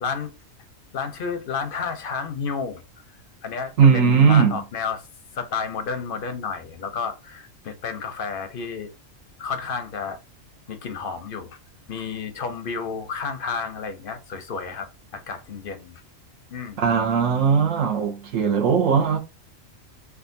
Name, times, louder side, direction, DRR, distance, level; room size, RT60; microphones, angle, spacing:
voice 1, 0.0-0.3 0.9-2.8 3.4-5.0 5.3-8.9 9.4-10.2 10.7-11.6 11.9-16.0 16.5-16.8, left 5 dB, 55° left, 0.6 m, -31 dB
voice 2, 3.8-4.6 16.8-19.2, right 6 dB, 75° right, 1.2 m, -18 dB
3.5 x 2.4 x 2.6 m
omnidirectional pair, 1.4 m